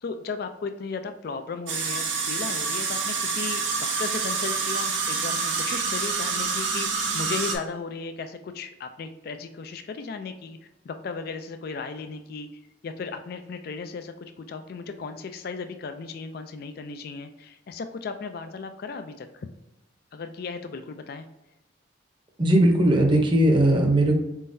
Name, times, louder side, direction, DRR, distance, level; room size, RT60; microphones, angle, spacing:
voice 1, 0.0-6.9 7.1-10.6 10.8-12.5 12.8-19.5 20.1-21.3, left 4 dB, 50° left, 8 dB, 0.3 m, -36 dB
sound 1, 1.7-7.6, right 4 dB, 80° right, 0.9 m, -27 dB
voice 2, 22.4-24.1, right 1 dB, 25° right, 1 dB, 0.7 m, -19 dB
4.4 x 3.7 x 2.6 m, 0.94 s
head